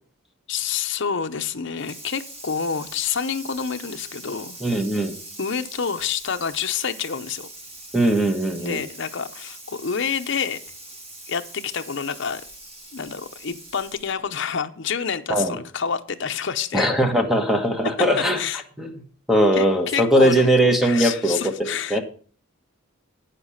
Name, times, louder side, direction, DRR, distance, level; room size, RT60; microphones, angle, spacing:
voice 1, 0.5-4.6 5.4-7.5 8.6-10.6 11.3-12.4 12.9-16.9 18.4-18.6 19.5-20.5 20.8-22.0, left 6 dB, 60° left, 0.7 m, -28 dB
Water tap faucet / Sink (filling or washing), 1.8-14.3, right 1 dB, 30° right, 1.6 m, -42 dB
voice 2, 4.6-5.2 7.9-8.8 15.3-15.6 16.7-18.4 18.8-19.0 19.3-22.0, right 1 dB, ahead, 1.2 m, -20 dB
8.8 x 6.8 x 5.6 m
head